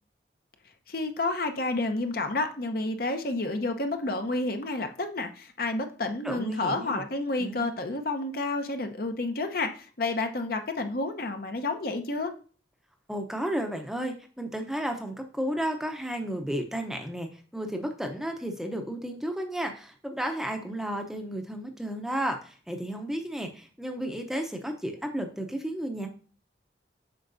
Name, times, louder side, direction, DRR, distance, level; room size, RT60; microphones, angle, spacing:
voice 1, 0.9-12.3, left 2 dB, 50° left, 6 dB, 0.8 m, -30 dB
voice 2, 6.2-7.0 7.4-7.8 13.1-26.1, right 1 dB, ahead, 4 dB, 0.7 m, -33 dB
7.8 x 5.8 x 2.6 m, 0.39 s
head